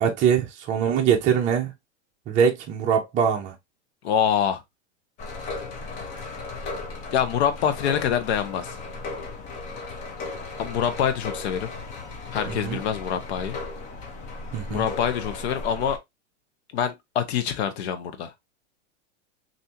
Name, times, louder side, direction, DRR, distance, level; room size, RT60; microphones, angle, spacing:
voice 1, 0.0-1.7 2.3-3.5 12.5-12.8 14.5-14.9, right 7 dB, 20° right, 0.6 m, -22 dB
voice 2, 4.0-4.6 7.1-8.8 10.6-11.7 12.3-13.6 14.7-16.0 16.7-18.3, left 8 dB, 65° left, 0.9 m, -25 dB
sound 1, 5.2-16.0, left 3 dB, 20° left, 0.5 m, -36 dB
3.3 x 2.6 x 2.8 m
supercardioid pair, 155°, 35 cm